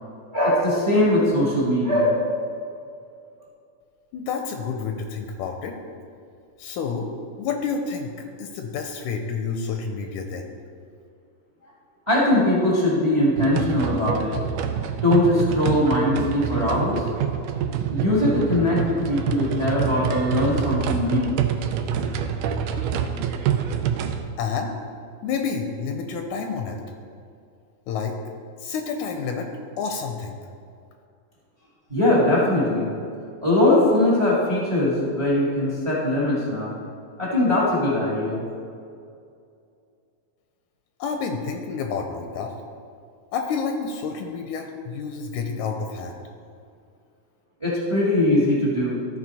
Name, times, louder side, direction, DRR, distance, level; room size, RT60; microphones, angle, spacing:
voice 1, 0.3-2.3 12.1-14.3 15.0-17.0 17.9-21.3 31.9-32.9 33.4-36.7 37.2-38.4 47.6-49.0, left 1 dB, 15° right, -5 dB, 1.0 m, -21 dB
voice 2, 4.1-5.8 6.6-7.1 7.4-8.1 8.4-10.5 24.4-24.7 25.2-26.8 27.9-28.2 28.6-29.5 29.8-30.4 41.0-42.5 43.3-46.2, left 5 dB, 80° left, 4 dB, 2.0 m, -29 dB
sound 1, 13.4-24.2, right 8 dB, 90° right, 2.1 m, -26 dB
13.5 x 4.8 x 4.1 m, 2.4 s
omnidirectional pair, 3.6 m